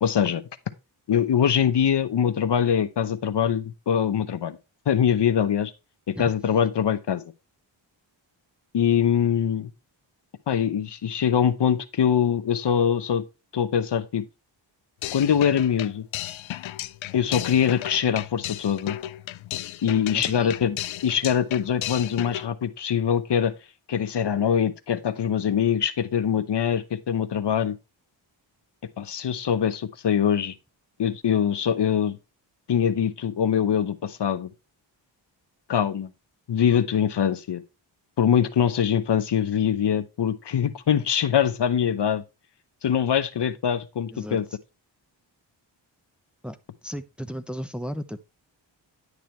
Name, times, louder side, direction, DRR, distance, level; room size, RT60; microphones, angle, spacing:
voice 1, 0.0-0.4 1.1-4.6 4.9-5.7 6.1-7.2 8.7-9.7 10.5-13.2 13.5-14.2 15.1-16.1 17.1-19.0 19.8-20.8 21.0-23.5 23.9-27.8 29.0-30.5 31.0-32.2 32.7-34.5 35.7-36.1 36.5-37.6 38.2-42.2 42.8-44.4, left 8 dB, 60° left, 0.9 m, -23 dB
sound 1, 15.0-22.5, left 13 dB, 80° left, 0.6 m, -34 dB
voice 2, 20.1-20.5 44.1-44.4 46.4-46.6 46.8-48.2, equal, ahead, 0.9 m, -34 dB
10.5 x 6.7 x 3.1 m
cardioid pair, 70°, 47 cm